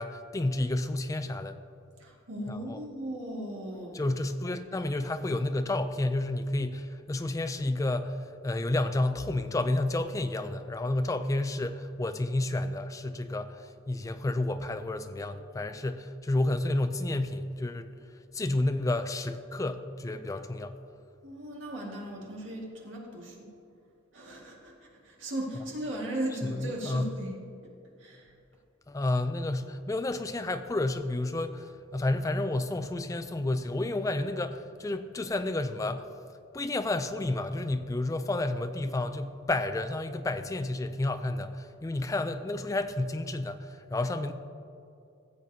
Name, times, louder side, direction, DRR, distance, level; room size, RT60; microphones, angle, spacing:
voice 1, 0.0-1.6 2.5-2.8 3.9-8.1 8.4-17.9 18.3-20.8 26.4-27.1 28.9-36.1 36.5-44.3, left 2 dB, 15° left, 9 dB, 0.3 m, -30 dB
voice 2, 2.0-4.1 21.2-23.5 24.1-24.7 25.0-27.4 28.0-28.3, right 1 dB, 65° right, -2 dB, 1.9 m, -37 dB
15.0 x 7.5 x 2.8 m, 2.6 s
head